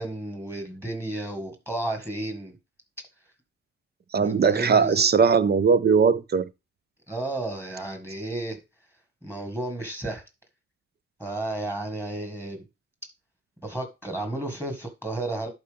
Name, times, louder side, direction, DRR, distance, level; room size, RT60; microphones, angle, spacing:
voice 1, 0.0-2.6 4.2-5.0 7.1-8.6 9.2-10.2 11.2-12.6 13.6-15.5, right 2 dB, 5° right, 1.8 m, -32 dB
voice 2, 4.1-6.5, right 6 dB, 35° right, 0.5 m, -20 dB
11.0 x 4.4 x 3.5 m
cardioid pair, 90°, 30 cm